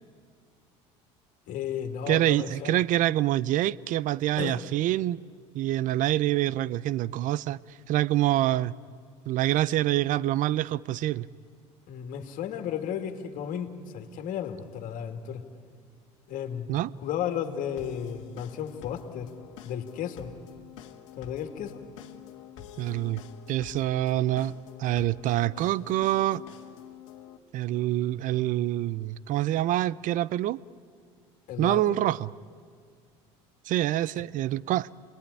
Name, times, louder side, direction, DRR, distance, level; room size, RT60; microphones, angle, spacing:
voice 1, 1.5-2.8 4.4-4.6 11.9-15.4 16.3-16.7 17.0-19.3 19.6-20.3 21.2-21.8 31.5-32.0, left 9 dB, 60° left, 2.4 m, -34 dB
voice 2, 2.1-5.2 5.5-7.6 7.9-8.7 9.3-11.3 16.7-16.9 22.8-23.2 23.5-24.5 24.8-26.4 27.5-30.6 31.6-32.3 33.7-34.9, right 14 dB, 60° right, 0.6 m, -26 dB
sound 1, 17.8-27.4, left 11 dB, 85° left, 1.5 m, -47 dB
26.5 x 20.5 x 9.8 m
supercardioid pair, 85°, 16 cm